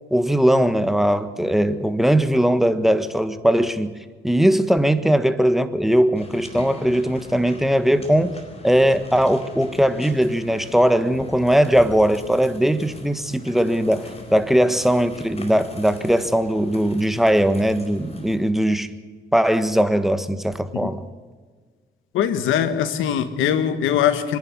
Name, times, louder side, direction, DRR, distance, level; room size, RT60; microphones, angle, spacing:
voice 1, 0.1-4.0 4.2-8.4 8.6-18.9 19.3-21.0, equal, ahead, 11 dB, 1.4 m, -19 dB
sound 1, 6.2-18.4, left 1 dB, 30° left, 4.6 m, -40 dB
voice 2, 22.1-24.4, left 9 dB, 90° left, 11 dB, 1.7 m, -21 dB
25.0 x 11.0 x 9.7 m, 1.5 s
cardioid pair, 90°, 20 cm